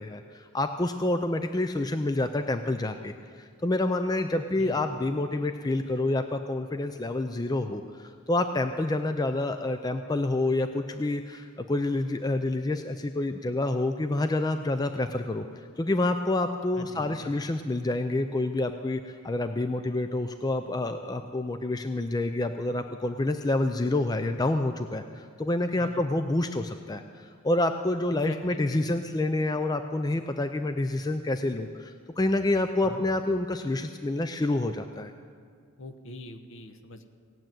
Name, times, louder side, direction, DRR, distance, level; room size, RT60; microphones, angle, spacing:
voice 1, 0.0-35.1, left 2 dB, 15° left, 8 dB, 0.4 m, -28 dB
voice 2, 4.3-4.8 16.8-17.3 25.8-26.1 28.1-29.0 32.8-33.1 35.8-37.1, left 2 dB, 60° left, 8 dB, 1.0 m, -44 dB
18.0 x 7.6 x 9.0 m, 2.1 s
head